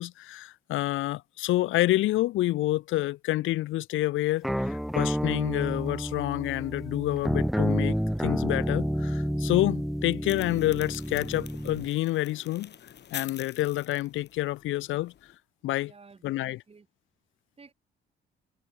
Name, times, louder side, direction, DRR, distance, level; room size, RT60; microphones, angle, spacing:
voice 1, 0.0-12.7 13.1-15.1 15.6-15.9 16.2-16.6, left 16 dB, 85° left, 0.8 m, -28 dB
sound 1, 4.4-11.9, equal, ahead, 1.0 m, -29 dB
sound 2, 10.2-15.4, left 9 dB, 60° left, 3.1 m, -46 dB
voice 2, 15.8-16.9 17.6-17.7, right 4 dB, 30° right, 3.2 m, -53 dB
cardioid pair, 90°, 20 cm